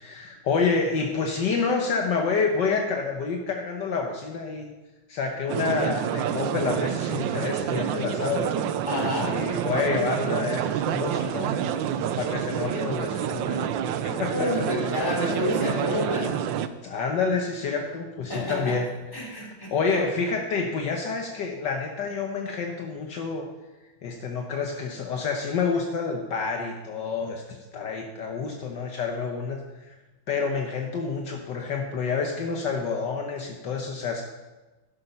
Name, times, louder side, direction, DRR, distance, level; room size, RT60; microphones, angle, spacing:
voice 1, 0.0-4.7 5.1-8.5 9.2-11.6 12.2-13.7 14.0-14.7 16.8-18.9 19.2-23.5 24.0-29.9 30.3-34.2, left 5 dB, 65° left, 2 dB, 1.6 m, -28 dB
Mind Defrag, 5.5-16.7, right 9 dB, 75° right, 1.3 m, -28 dB
voice 2, 8.8-9.4 14.1-16.4 18.3-18.8 19.1-20.1, left 1 dB, 10° left, -1 dB, 3.0 m, -29 dB
12.5 x 9.9 x 5.6 m, 1.2 s
omnidirectional pair, 2.1 m